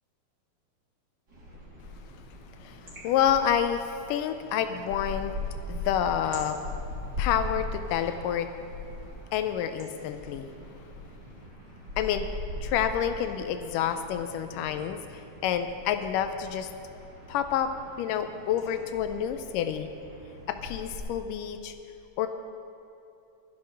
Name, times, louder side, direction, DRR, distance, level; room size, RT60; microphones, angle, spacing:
sound 1, 1.3-21.0, left 2 dB, 30° right, 3.7 m, -40 dB
voice 1, 2.6-5.3 5.7-6.6 7.2-8.5 9.3-10.5 12.0-12.3 12.6-16.7 17.3-19.9 20.5-21.7 22.2-22.3, left 9 dB, 85° left, 9 dB, 2.2 m, -28 dB
13.0 x 10.5 x 6.2 m, 2.8 s
omnidirectional pair, 3.8 m